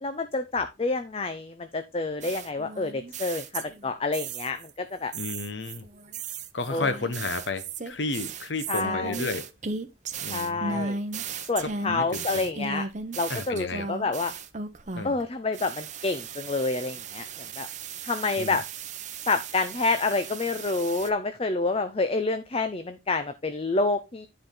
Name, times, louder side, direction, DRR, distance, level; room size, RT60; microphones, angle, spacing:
voice 1, 0.0-5.1 6.7-6.9 8.7-9.2 10.3-11.0 11.5-12.9 13.2-14.3 15.0-17.3 17.6-17.7 18.0-18.6 19.3-24.3, left 3 dB, 35° left, 0.6 m, -28 dB
sound 1, 2.2-4.7 5.1-15.2 15.5-21.1, right 4 dB, 40° right, 0.9 m, -36 dB
voice 2, 5.1-5.9 6.5-9.5 10.2-10.9 11.6-12.5 13.3-13.9 14.9-15.2 18.4-18.6, left 3 dB, 90° left, 1.0 m, -32 dB
10.5 x 4.7 x 3.8 m
head